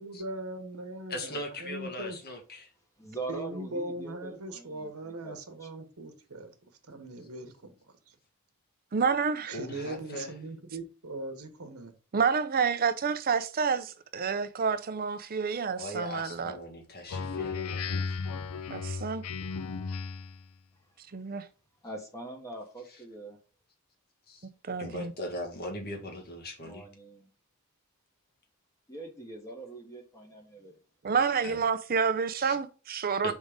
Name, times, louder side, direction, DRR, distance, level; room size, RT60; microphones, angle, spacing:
voice 1, 0.0-2.2 3.3-6.5 6.9-7.7 8.1-8.2 9.5-11.9, right 2 dB, 75° right, 1.2 m, -40 dB
voice 2, 1.1-2.7 9.5-10.3 15.8-18.2 24.3-24.5 24.8-26.9 31.4-31.6 32.4-32.5 33.2-33.3, left 1 dB, 45° left, 1.6 m, -39 dB
voice 3, 3.0-5.7 20.8-20.9 21.8-23.4 26.6-27.3 28.9-30.7, right 2 dB, 15° left, 1.2 m, -43 dB
voice 4, 8.9-9.5 12.1-16.5 18.7-19.2 21.1-21.5 24.6-25.1 31.0-33.3, right 6 dB, 45° right, 0.6 m, -28 dB
Speech synthesizer, 17.1-20.4, left 5 dB, 75° left, 0.5 m, -35 dB
5.3 x 3.7 x 5.0 m
head